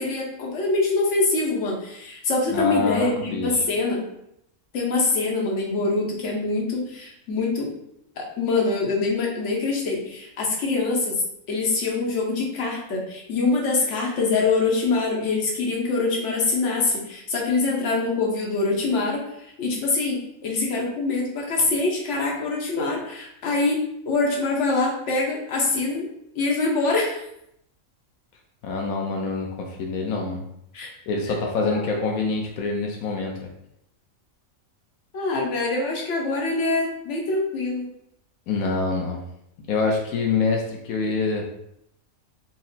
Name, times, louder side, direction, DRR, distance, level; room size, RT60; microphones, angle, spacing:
voice 1, 0.0-4.0 4.7-7.7 8.2-11.2 11.5-26.1 26.3-27.2 30.7-30.9 31.6-32.0 35.1-37.9, left 3 dB, 60° left, -1 dB, 1.2 m, -24 dB
voice 2, 2.5-3.7 28.6-30.4 31.1-33.5 38.5-39.2 39.7-41.5, left 4 dB, 90° left, 1 dB, 1.1 m, -26 dB
4.3 x 2.0 x 4.0 m, 0.77 s
omnidirectional pair, 1.4 m